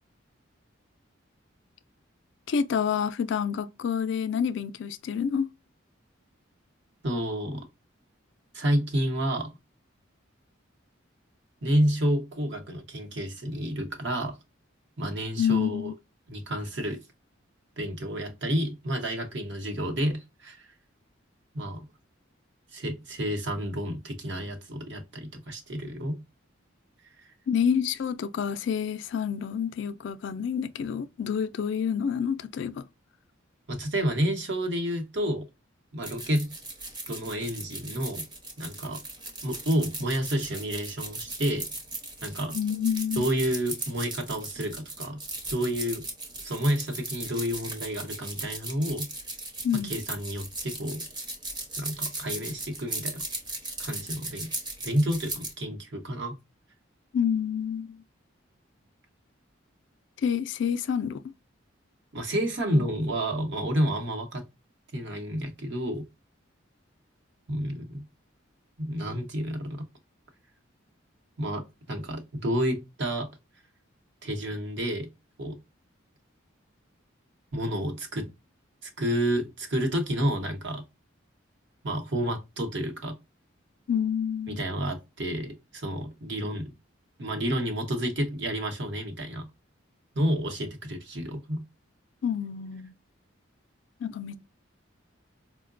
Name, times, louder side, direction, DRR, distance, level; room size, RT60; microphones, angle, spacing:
voice 1, 2.5-5.5 15.4-15.9 27.5-32.8 42.5-43.3 49.6-49.9 57.1-58.0 60.2-61.2 62.7-62.8 83.9-84.6 92.2-92.9 94.0-94.4, left 7 dB, 60° left, 0.3 m, -28 dB
voice 2, 7.0-7.6 8.5-9.5 11.6-14.4 15.0-15.9 16.3-17.0 17.8-20.7 21.5-21.9 22.7-26.2 27.2-27.3 33.7-35.5 35.9-36.5 37.1-38.2 38.6-39.0 39.4-41.7 42.2-42.6 43.2-45.2 45.5-46.0 46.4-49.1 49.8-51.0 51.8-53.2 53.8-54.5 54.8-56.3 62.1-64.4 64.9-66.0 67.5-68.0 68.8-69.8 71.4-73.3 74.2-75.1 75.4-75.6 77.5-78.3 78.8-80.8 81.8-83.2 84.5-86.7 87.2-89.5 90.1-91.6, equal, 60° right, 0.9 m, -30 dB
sound 1, 36.0-55.5, right 2 dB, 20° right, 0.7 m, -37 dB
4.5 x 2.1 x 2.4 m
head